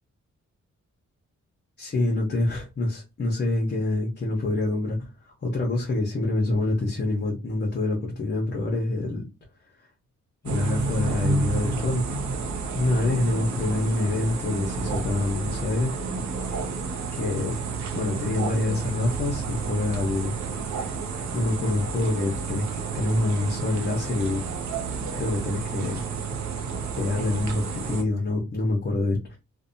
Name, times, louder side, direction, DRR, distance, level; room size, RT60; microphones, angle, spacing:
voice 1, 1.8-9.2 10.4-12.1 12.7-16.0 16.4-16.6 17.1-17.6 17.9-20.3 20.7-20.9 21.3-24.4 25.1-26.0 27.0-29.4, left 2 dB, 40° left, 0.7 m, -26 dB
sound 1, 10.5-28.0, right 4 dB, 70° right, 0.6 m, -30 dB
2.6 x 2.1 x 2.6 m
wide cardioid pair, 115°, 29 cm